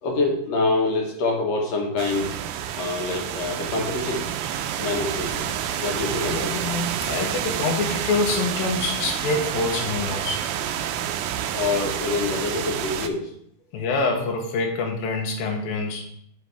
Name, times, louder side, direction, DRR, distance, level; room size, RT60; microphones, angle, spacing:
voice 1, 0.0-2.4 2.7-4.3 4.8-5.5 5.8-6.8 11.5-13.3, left 3 dB, 65° left, 1 dB, 1.8 m, -26 dB
sound 1, 2.0-13.1, right 9 dB, 90° right, 2.4 m, -29 dB
voice 2, 6.3-10.4 13.7-16.0, left 3 dB, 90° left, 1 dB, 2.7 m, -26 dB
9.3 x 5.3 x 3.4 m, 0.70 s
omnidirectional pair, 4.0 m